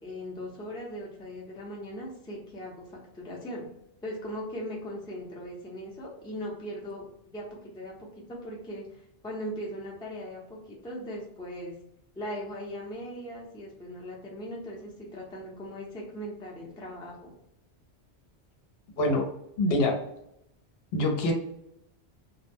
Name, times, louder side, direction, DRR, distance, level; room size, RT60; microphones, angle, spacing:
voice 1, 0.0-3.7 4.0-7.1 7.3-11.8 12.2-17.3, equal, 5° left, -3 dB, 0.4 m, -39 dB
voice 2, 19.6-19.9 20.9-21.3, left 1 dB, 65° left, 2 dB, 0.8 m, -24 dB
2.2 x 2.0 x 3.3 m, 0.78 s
omnidirectional pair, 1.1 m